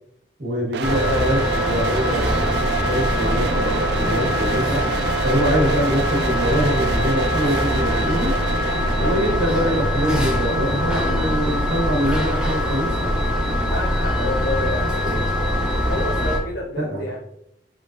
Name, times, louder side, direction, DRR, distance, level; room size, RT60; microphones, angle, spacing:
voice 1, 0.4-4.8 5.2-8.3 9.0-13.1 16.8-17.0, equal, 80° right, -5 dB, 1.5 m, -24 dB
sound 1, 0.7-13.6, right 5 dB, 65° right, 0.4 m, -29 dB
sound 2, 0.8-16.4, left 1 dB, 5° right, 0.6 m, -23 dB
sound 3, 2.0-11.8, equal, 40° right, 0.8 m, -38 dB
voice 2, 13.7-15.6 15.9-17.2, left 2 dB, 70° left, -1 dB, 0.7 m, -29 dB
4.8 x 3.8 x 2.5 m, 0.75 s
head